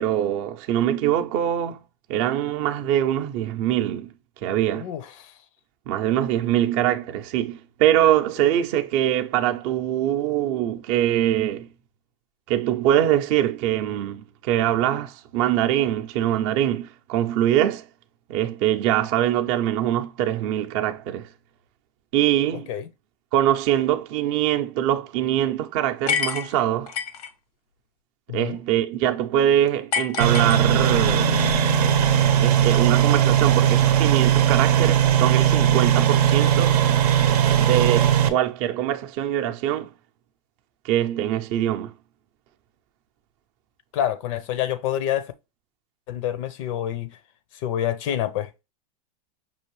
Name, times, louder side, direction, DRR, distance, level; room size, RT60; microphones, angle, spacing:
voice 1, 0.0-1.8 2.1-4.1 4.4-4.9 5.9-11.7 12.5-17.8 18.3-21.3 22.1-22.7 23.3-26.9 28.3-31.4 32.4-36.8 37.6-39.9 40.8-41.9, right 11 dB, 45° right, 0.5 m, -23 dB
voice 2, 4.7-5.3 22.7-22.9 28.3-28.6 43.9-45.3 46.1-47.2 47.6-48.5, left 11 dB, 55° left, 0.5 m, -27 dB
sound 1, 26.1-27.3 29.9-31.1, left 7 dB, 90° left, 0.9 m, -27 dB
sound 2, 30.2-38.3, right 9 dB, 85° right, 0.7 m, -18 dB
5.5 x 2.6 x 3.0 m
supercardioid pair, 145°, 19 cm